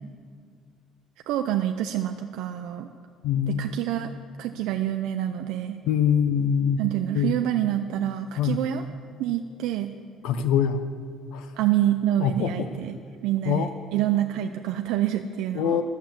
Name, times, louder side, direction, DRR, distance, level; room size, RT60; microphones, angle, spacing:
voice 1, 1.3-2.9 3.5-4.1 4.4-5.8 6.8-8.8 9.2-9.9 11.6-15.8, right 12 dB, 80° right, 6 dB, 0.5 m, -27 dB
voice 2, 3.2-3.7 5.8-6.8 7.1-7.4 8.4-8.6 10.2-10.8 11.3-11.5 12.2-12.7 13.5-13.7 15.5-15.8, left 8 dB, 90° left, 11 dB, 0.7 m, -24 dB
12.0 x 7.3 x 7.3 m, 2.1 s
cardioid pair, 165°, 0 cm